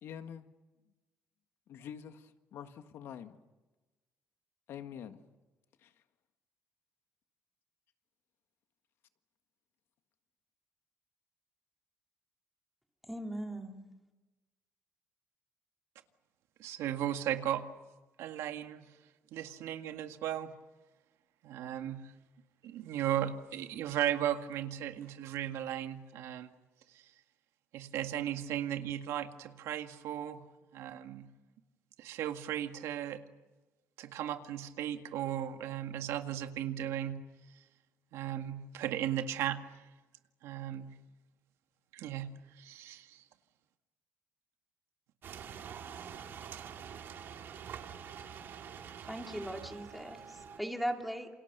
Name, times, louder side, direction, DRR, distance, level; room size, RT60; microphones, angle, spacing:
voice 1, 0.0-0.5 1.7-3.4 4.7-5.2 5.8-5.9, left 8 dB, 65° left, 1.7 m, -46 dB
voice 2, 13.1-13.8 49.0-51.3, equal, ahead, 2.4 m, -38 dB
voice 3, 16.6-17.7 18.2-18.9 19.3-20.6 21.4-22.1 22.6-26.5 26.9-27.0 27.7-30.5 30.7-31.3 32.0-33.2 34.0-37.3 38.1-39.7 40.4-41.0 41.9-43.2, right 11 dB, 90° right, 1.9 m, -36 dB
sound 1, 45.2-50.6, right 8 dB, 55° right, 2.1 m, -46 dB
28.5 x 28.0 x 6.8 m
cardioid pair, 160°, 5 cm